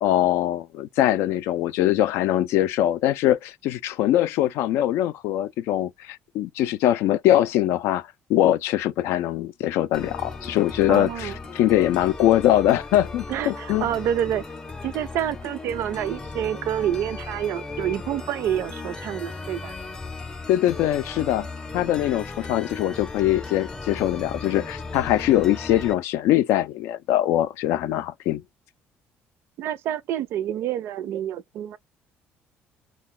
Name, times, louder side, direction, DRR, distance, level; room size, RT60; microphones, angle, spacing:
voice 1, 0.0-13.9 20.5-21.5 21.7-28.4, left 13 dB, 85° left, 0.4 m, -22 dB
sound 1, 9.9-25.9, left 3 dB, 15° left, 0.5 m, -36 dB
voice 2, 10.9-11.4 13.3-14.4 14.8-19.7 27.7-28.0 29.6-31.8, right 10 dB, 70° right, 0.4 m, -28 dB
2.3 x 2.2 x 3.7 m
cardioid pair, 140°, 4 cm